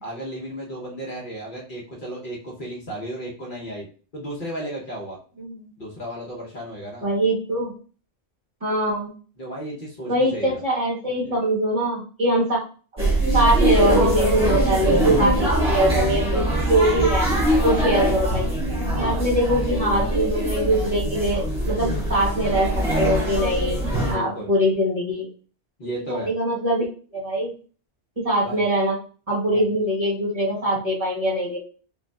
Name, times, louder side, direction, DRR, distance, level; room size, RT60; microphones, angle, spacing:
voice 1, 0.0-3.9 4.1-5.2 5.8-7.1 9.4-10.6 17.6-17.9 19.0-19.2 24.1-24.5 25.8-26.3 28.4-28.6, right 1 dB, 50° left, -3 dB, 1.0 m, -34 dB
voice 2, 5.4-5.7 7.0-7.7 8.6-9.1 10.0-12.6 12.9-13.0 13.3-17.2 17.6-18.4 18.8-22.7 23.0-23.8 24.1-25.2 25.8-26.9 27.1-27.5 28.2-29.0 29.3-31.6, right 1 dB, 30° right, -5 dB, 1.3 m, -23 dB
sound 1, 13.0-24.1, right 1 dB, 5° right, 1.4 m, -22 dB
5.0 x 2.6 x 2.3 m, 0.39 s
omnidirectional pair, 1.2 m